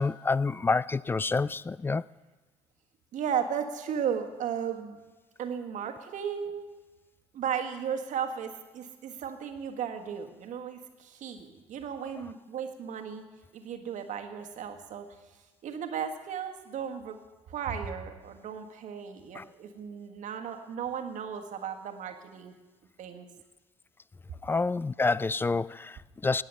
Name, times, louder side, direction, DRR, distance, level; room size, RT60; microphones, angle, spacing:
voice 1, 0.0-2.0 19.4-19.5 24.4-26.4, left 3 dB, 15° left, 0.3 m, -28 dB
voice 2, 3.1-5.0 5.4-6.7 7.3-13.2 13.5-15.1 15.6-17.2 17.5-22.5 23.0-23.3, right 8 dB, 50° right, 1.6 m, -35 dB
19.0 x 8.2 x 5.6 m
figure-of-eight pair, 50°, 16 cm